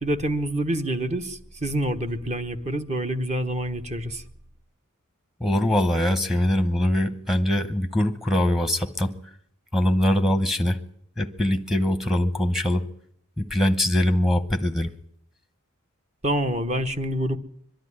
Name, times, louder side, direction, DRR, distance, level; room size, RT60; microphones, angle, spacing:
voice 1, 0.0-4.2 16.2-17.4, right 1 dB, 30° right, 1.1 m, -27 dB
voice 2, 5.4-9.1 9.7-10.8 11.2-12.9 13.4-14.9, left 1 dB, ahead, 1.0 m, -22 dB
23.5 x 12.0 x 9.9 m
head